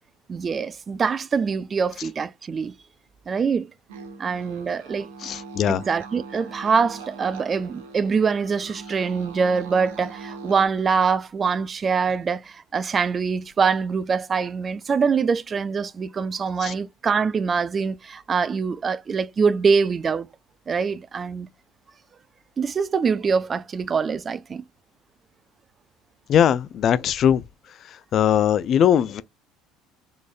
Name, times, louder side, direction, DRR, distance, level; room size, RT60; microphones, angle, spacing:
voice 1, 0.3-2.7 3.3-3.7 4.2-5.1 5.7-20.3 20.7-21.5 22.6-24.6, right 5 dB, 35° right, 0.3 m, -24 dB
sound 1, 3.9-10.7, right 5 dB, 80° right, 1.0 m, -41 dB
voice 2, 5.2-5.8 16.6-16.7 26.3-27.4 28.1-29.2, left 9 dB, 50° left, 0.3 m, -20 dB
4.0 x 3.2 x 2.4 m
hypercardioid pair, 75°, 0 cm